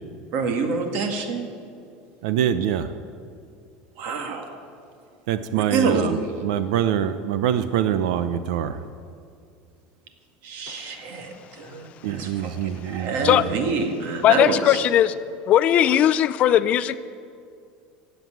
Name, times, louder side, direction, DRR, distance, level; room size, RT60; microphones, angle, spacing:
voice 1, 0.3-1.5 4.0-4.6 5.5-6.3 10.4-14.8 15.8-16.0, right 4 dB, 55° right, 2.0 m, -27 dB
voice 2, 2.2-2.9 5.3-8.8 12.0-13.6, right 10 dB, 90° right, 0.7 m, -25 dB
voice 3, 14.2-15.1 15.5-17.0, left 11 dB, 35° left, 0.4 m, -18 dB
15.5 x 8.1 x 9.3 m
cardioid pair, 165°, 4 cm